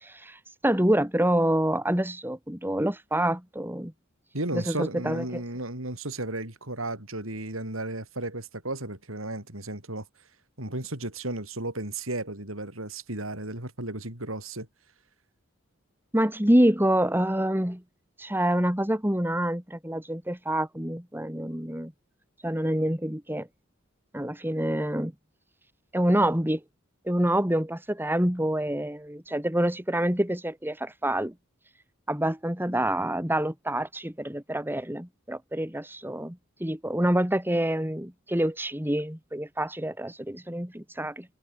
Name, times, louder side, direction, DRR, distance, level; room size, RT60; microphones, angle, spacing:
voice 1, 0.0-3.9 4.5-5.4 16.1-17.8 18.2-21.9 22.4-23.5 24.1-25.1 25.9-26.6 27.0-31.3 32.1-41.3, right 1 dB, 10° right, 3.0 m, -27 dB
voice 2, 4.3-10.1 10.6-14.7, right 2 dB, 80° right, 7.0 m, -34 dB
head